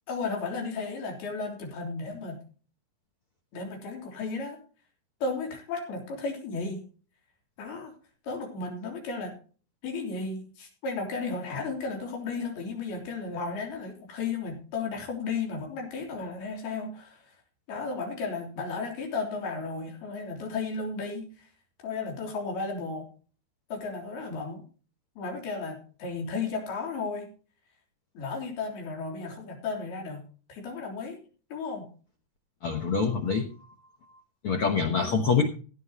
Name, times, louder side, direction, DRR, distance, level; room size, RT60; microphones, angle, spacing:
voice 1, 0.1-2.4 3.5-4.6 5.2-6.9 7.6-7.9 8.2-9.4 9.8-17.3 17.7-21.5 21.8-23.1 23.7-24.6 25.2-27.3 28.2-30.2 30.5-31.2 31.5-31.9 35.0-35.2, left 4 dB, 90° left, 1 dB, 5.3 m, -34 dB
voice 2, 32.6-33.5 34.4-35.4, left 5 dB, 70° left, 4 dB, 1.3 m, -25 dB
16.5 x 9.9 x 3.0 m, 0.39 s
omnidirectional pair, 4.3 m